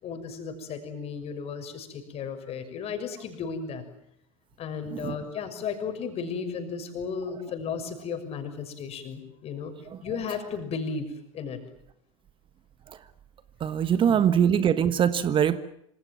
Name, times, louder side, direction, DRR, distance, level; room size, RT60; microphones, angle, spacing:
voice 1, 0.0-3.8 4.6-9.7 10.0-11.1 11.3-11.6 14.1-14.2, left 6 dB, 35° left, 7 dB, 6.2 m, -34 dB
voice 2, 13.6-15.6, right 8 dB, 30° right, 13 dB, 1.4 m, -22 dB
27.0 x 26.5 x 7.4 m, 0.75 s
figure-of-eight pair, 80°, 17 cm